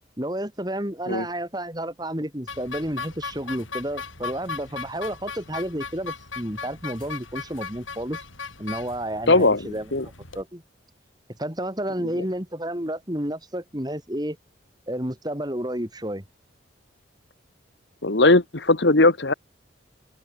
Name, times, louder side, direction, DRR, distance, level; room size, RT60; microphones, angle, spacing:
voice 1, 0.2-8.2 8.6-9.9 10.3-10.6 11.4-14.4 14.9-16.2, right 1 dB, 20° right, 3.4 m, -31 dB
sound 1, 2.5-10.4, left 5 dB, 90° left, 6.4 m, -38 dB
voice 2, 9.3-10.0 18.0-19.3, left 2 dB, 65° left, 1.5 m, -19 dB
open air
head